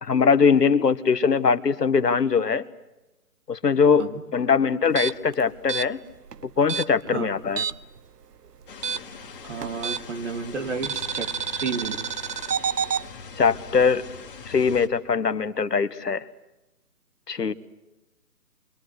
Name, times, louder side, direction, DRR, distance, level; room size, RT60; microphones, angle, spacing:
voice 1, 0.0-2.6 3.5-6.0 6.6-7.6 13.4-14.1 14.5-16.3 17.3-17.5, left 5 dB, 80° left, 13 dB, 1.5 m, -21 dB
sound 1, 4.8-8.0 8.2-10.3 10.8-13.0, right 7 dB, 75° right, 0.9 m, -29 dB
sound 2, 8.7-14.9, left 5 dB, 35° left, 2.3 m, -42 dB
voice 2, 9.4-12.1, right 5 dB, 50° right, 9 dB, 2.2 m, -32 dB
28.5 x 23.5 x 8.0 m, 0.99 s
figure-of-eight pair, 150°, 47 cm